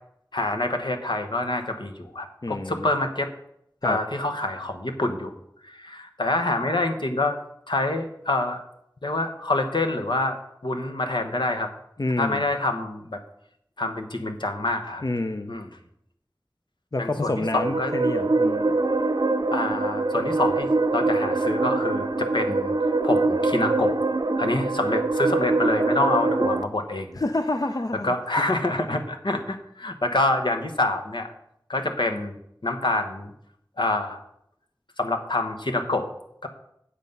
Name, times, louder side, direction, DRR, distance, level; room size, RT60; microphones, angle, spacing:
voice 1, 0.3-3.3 3.8-5.3 5.6-7.4 7.7-8.6 9.0-10.4 10.6-11.7 12.2-13.2 13.8-15.0 15.5-15.7 17.0-17.9 19.5-22.7 23.0-24.0 24.4-27.2 28.0-31.3 31.7-33.3 33.8-34.2 35.0-36.1 36.4-36.5, left 2 dB, 80° left, 5 dB, 1.1 m, -26 dB
voice 2, 2.4-2.9 3.8-4.0 12.0-12.5 15.0-15.5 16.9-18.8 27.2-28.1, left 2 dB, 50° left, 8 dB, 0.5 m, -28 dB
sound 1, 17.2-26.6, right 3 dB, 60° right, 0.5 m, -24 dB
8.3 x 7.6 x 5.3 m, 0.74 s
wide cardioid pair, 40°, 8 cm